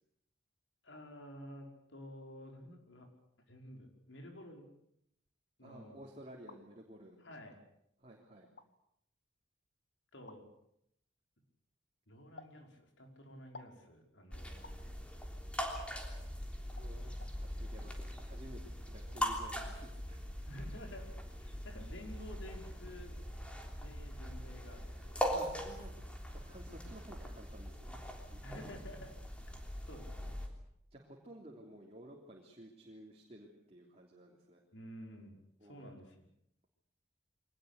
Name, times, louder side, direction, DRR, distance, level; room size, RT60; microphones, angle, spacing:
voice 1, 0.8-3.1 3.5-4.7 5.6-6.0 7.2-7.6 10.1-10.5 12.1-14.8 20.5-21.1 21.4-23.2 23.7-25.2 28.4-29.2 29.9-30.4 34.7-35.4 35.6-36.3, equal, 90° left, 3 dB, 5.3 m, -51 dB
voice 2, 5.6-7.2 8.0-8.5 16.8-20.3 20.6-20.7 25.3-26.0 26.4-27.9 28.3-28.5 30.9-34.6 35.6-35.9, right 1 dB, 35° right, -1 dB, 3.4 m, -54 dB
sound 1, 6.2-6.6 7.5-7.6 8.4-8.7 10.3-10.4 12.4-12.6 13.5-13.8 14.6-14.8 16.1-16.2 16.8-16.9 17.2-17.3, left 3 dB, 65° left, 1.7 m, -53 dB
sound 2, 14.3-30.5, equal, 5° left, 3.4 m, -41 dB
24.0 x 19.0 x 8.3 m, 0.74 s
head